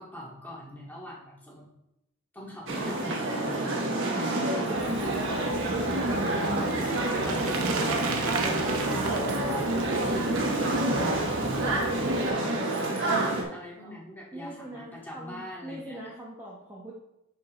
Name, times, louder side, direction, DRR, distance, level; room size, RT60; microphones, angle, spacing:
voice 1, 0.0-1.6 2.3-5.3 5.6-9.2 9.5-10.4 11.1-12.6 12.9-16.0, left 1 dB, 10° left, -5 dB, 2.0 m, -42 dB
sound 1, 2.7-13.4, right 2 dB, 60° right, 1.3 m, -27 dB
Bicycle, 4.8-12.3, right 4 dB, 90° right, 0.9 m, -37 dB
voice 2, 11.5-12.2 13.8-13.9 14.3-16.9, right 1 dB, 10° right, -6 dB, 1.2 m, -42 dB
10.5 x 5.5 x 3.2 m, 0.86 s
head